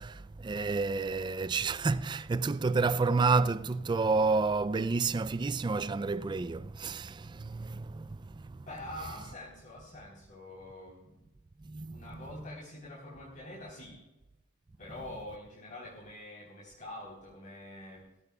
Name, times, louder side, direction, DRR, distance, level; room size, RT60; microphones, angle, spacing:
voice 1, 0.0-9.3 11.6-12.4 14.9-15.2, right 4 dB, 20° right, 0.3 m, -30 dB
voice 2, 8.7-11.3 11.9-14.0 14.8-18.0, left 1 dB, 40° left, 3.6 m, -45 dB
18.5 x 16.0 x 2.3 m
head